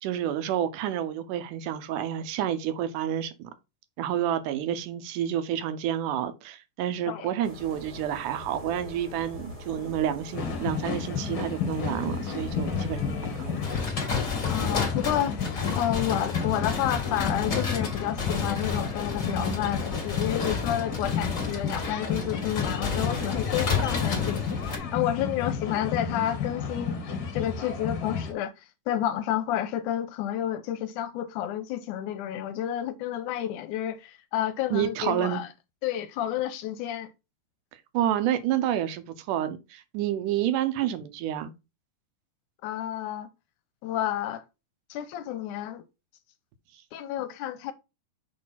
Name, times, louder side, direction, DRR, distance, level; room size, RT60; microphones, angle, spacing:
voice 1, 0.0-3.5 4.0-13.6 34.7-35.4 37.9-41.5, right 10 dB, 80° right, 2.3 m, -29 dB
sound 1, 7.4-13.8, left 1 dB, 25° right, 1.2 m, -41 dB
sound 2, 10.3-28.3, left 6 dB, 50° left, 1.6 m, -32 dB
sound 3, 13.6-24.8, left 5 dB, 30° left, 1.6 m, -31 dB
voice 2, 14.5-26.9 27.3-28.5 28.9-35.5 35.8-37.1 42.6-43.3 43.8-44.4 44.9-45.8 46.9-47.7, left 11 dB, 85° left, 2.1 m, -30 dB
6.5 x 3.2 x 5.7 m
omnidirectional pair, 3.7 m